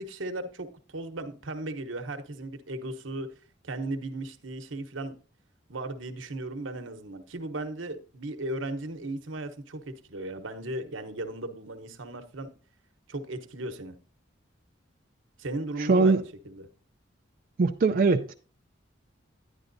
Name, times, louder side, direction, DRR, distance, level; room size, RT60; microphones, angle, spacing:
voice 1, 0.0-3.3 3.6-5.2 5.7-9.8 10.1-12.5 13.1-13.9 15.4-16.7, right 2 dB, 80° right, 1.0 m, -36 dB
voice 2, 15.8-16.2 17.6-18.3, right 4 dB, 45° right, 0.4 m, -21 dB
10.5 x 9.8 x 2.6 m
head